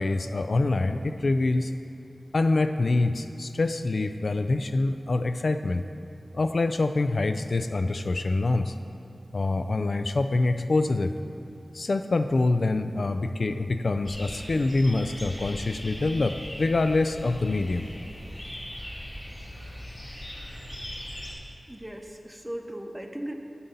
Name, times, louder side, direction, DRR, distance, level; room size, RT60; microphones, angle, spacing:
voice 1, 0.0-1.7 2.3-5.8 6.3-8.7 9.3-11.1 11.7-17.9, left 2 dB, 65° left, 8 dB, 0.3 m, -25 dB
sound 1, 14.0-21.3, equal, 30° left, 1.7 m, -39 dB
voice 2, 21.7-23.3, right 1 dB, 10° right, 4 dB, 0.7 m, -37 dB
11.0 x 4.0 x 6.8 m, 2.7 s
wide cardioid pair, 80°, 0 cm